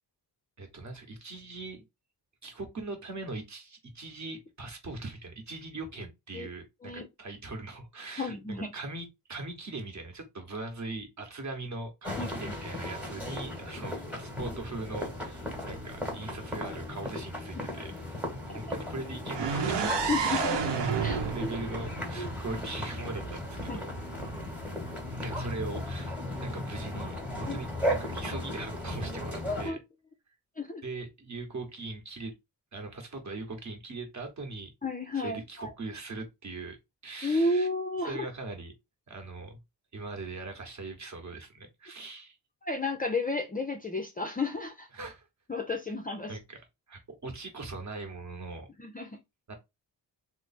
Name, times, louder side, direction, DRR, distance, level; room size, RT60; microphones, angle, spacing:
voice 1, 0.6-1.8 2.4-8.3 8.7-17.9 18.4-20.4 21.0-23.9 25.2-29.8 30.8-32.3 32.7-34.7 35.1-36.8 37.0-37.7 38.1-38.7 39.1-39.6 39.9-42.4 44.9-45.3 46.3-46.6 46.9-48.7 49.5-49.6, right 2 dB, 40° right, 1.1 m, -40 dB
voice 2, 8.2-8.7 12.2-12.5 15.4-15.8 17.6-17.7 20.1-20.6 21.0-21.5 22.2-22.3 23.7-23.8 27.5-27.6 29.6-29.8 30.6-30.8 34.8-35.7 37.2-38.3 42.6-44.9 45.5-46.3 48.8-49.2, left 2 dB, 20° left, 0.4 m, -32 dB
sound 1, 12.0-29.7, left 1 dB, 5° right, 1.1 m, -36 dB
sound 2, 19.3-23.2, right 6 dB, 75° right, 0.8 m, -31 dB
3.1 x 2.0 x 4.1 m
wide cardioid pair, 120°, 43 cm